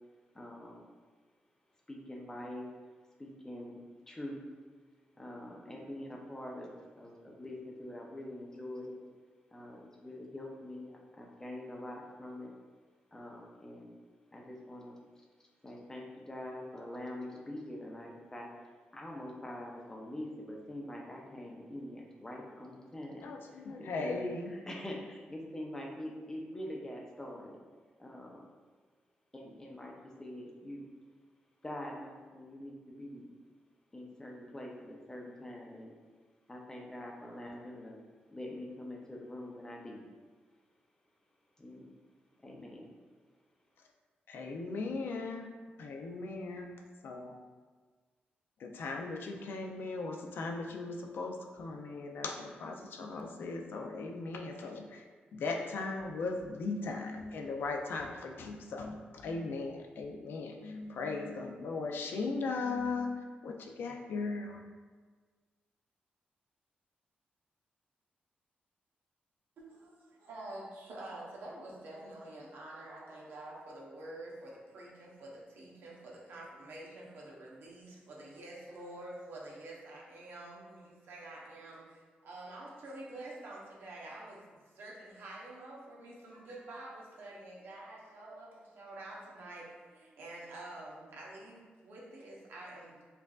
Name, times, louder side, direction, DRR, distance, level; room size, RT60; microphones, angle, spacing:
voice 1, 0.3-0.8 1.9-2.6 3.2-4.4 5.1-9.0 9.5-12.5 13.1-13.9 14.3-15.3 15.6-18.5 18.9-27.6 28.0-28.4 29.3-30.9 31.6-33.3 33.9-35.9 36.5-37.9 38.3-40.0 41.6-41.9 42.4-42.9, left 1 dB, 15° left, -1 dB, 0.5 m, -44 dB
voice 2, 23.2-24.5 44.3-45.5 45.8-46.7 47.0-47.3 48.6-55.0 55.3-64.6, left 3 dB, 75° left, 2 dB, 0.4 m, -38 dB
voice 3, 69.6-93.0, right 1 dB, 85° right, -4 dB, 0.8 m, -48 dB
4.4 x 2.4 x 2.3 m, 1.5 s
wide cardioid pair, 125°, 4 cm